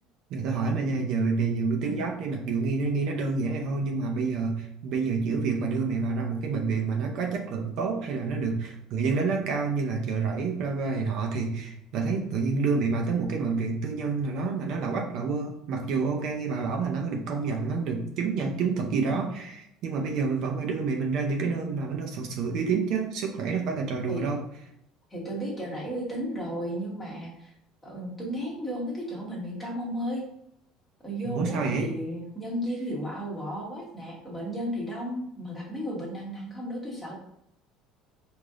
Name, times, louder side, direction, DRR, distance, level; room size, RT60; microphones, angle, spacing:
voice 1, 0.3-24.4 31.2-31.9, right 4 dB, 55° right, 1 dB, 0.7 m, -28 dB
voice 2, 18.9-19.3 24.1-24.2 25.1-27.5 27.8-30.2 31.0-37.1, equal, 10° left, -4 dB, 1.3 m, -34 dB
4.9 x 2.7 x 3.7 m, 0.78 s
cardioid pair, 155°, 0 cm